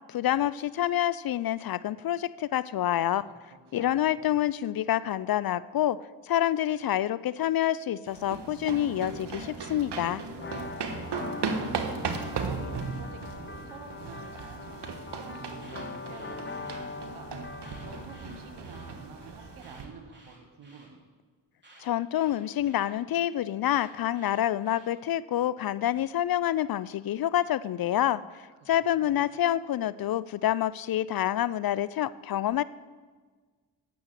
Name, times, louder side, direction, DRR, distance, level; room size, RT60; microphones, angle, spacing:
voice 1, 0.1-3.2 3.7-6.0 6.3-10.2 21.8-32.6, left 12 dB, 50° left, 18 dB, 0.4 m, -27 dB
voice 2, 3.3-4.2 10.1-17.3 17.6-21.0 28.6-29.2, right 5 dB, 75° right, 5 dB, 1.6 m, -50 dB
sound 1, 8.1-19.8, right 4 dB, 55° right, 1.4 m, -37 dB
sound 2, 10.3-19.9, left 4 dB, 25° left, 0.8 m, -42 dB
Alarm, 15.4-16.9 17.5-18.9 19.5-20.9 21.6-22.9 23.6-24.9, right 1 dB, 20° right, 3.5 m, -56 dB
9.1 x 6.9 x 8.1 m, 1.4 s
supercardioid pair, 45°, 49 cm